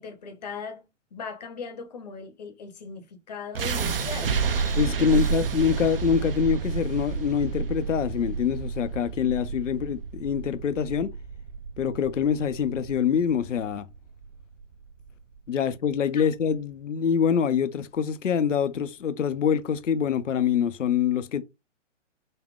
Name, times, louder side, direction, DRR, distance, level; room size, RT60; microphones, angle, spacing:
voice 1, 0.0-4.4 5.0-5.1 16.1-16.3, left 5 dB, 35° left, 0.7 m, -39 dB
sound 1, 3.6-15.6, right 5 dB, 45° right, 0.5 m, -30 dB
voice 2, 4.8-11.1 11.8-13.9 15.5-21.4, left 7 dB, 75° left, 0.5 m, -25 dB
4.0 x 2.2 x 3.5 m
figure-of-eight pair, 125°, 38 cm